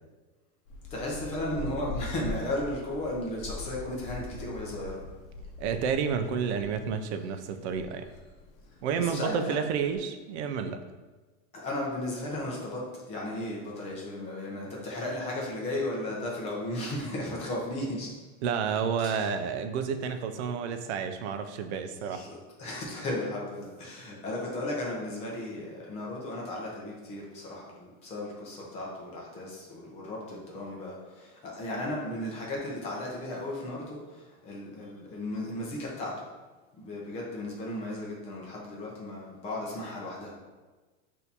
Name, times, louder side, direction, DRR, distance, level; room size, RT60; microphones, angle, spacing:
sound 1, 0.7-10.0, left 2 dB, 70° left, 0.8 m, -42 dB
voice 1, 0.9-5.0 8.9-9.6 11.5-18.1 19.0-19.3 20.6-20.7 21.6-21.7 22.1-22.3 22.6-36.3 36.8-40.4, left 1 dB, 15° left, -3 dB, 0.5 m, -35 dB
voice 2, 5.6-8.1 8.8-10.8 18.4-22.3, right 6 dB, 50° right, 7 dB, 0.5 m, -30 dB
6.3 x 2.7 x 2.7 m, 1.3 s
supercardioid pair, 160°, 43 cm